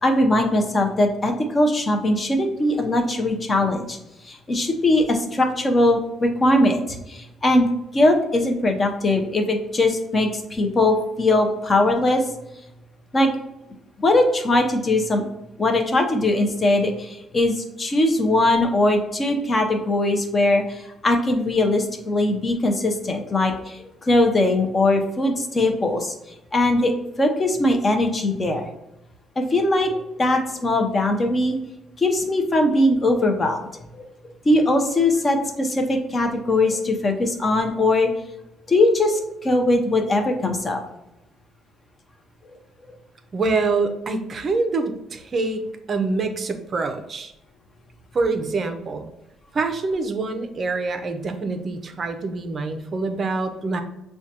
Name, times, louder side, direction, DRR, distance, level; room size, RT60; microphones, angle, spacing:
voice 1, 0.0-4.0 4.2-7.7 7.9-12.2 13.1-13.3 14.0-15.2 15.6-26.1 26.5-26.9 27.2-28.7 29.4-31.6 32.0-34.1 34.4-38.1 38.7-40.8, left 2 dB, 25° left, 4 dB, 0.6 m, -20 dB
voice 2, 43.3-47.3 48.1-49.1 49.5-53.8, right 3 dB, 35° right, 7 dB, 0.5 m, -25 dB
6.1 x 2.2 x 2.8 m, 0.90 s
cardioid pair, 140°, 0 cm